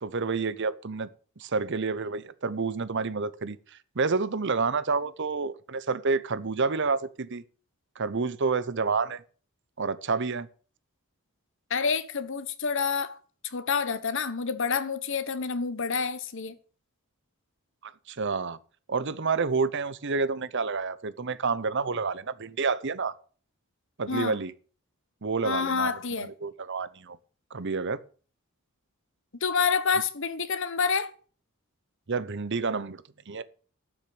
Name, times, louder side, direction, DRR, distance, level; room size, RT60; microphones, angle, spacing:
voice 1, 0.0-1.1 1.4-7.4 8.0-9.2 9.8-10.5 17.8-18.6 18.9-23.1 24.0-24.5 25.2-27.2 27.5-28.0 32.1-33.4, right 4 dB, 55° right, 0.8 m, -29 dB
voice 2, 11.7-13.2 13.5-16.5 24.1-24.4 25.4-26.3 29.4-31.1, left 5 dB, 60° left, 1.2 m, -28 dB
12.0 x 6.4 x 8.7 m
head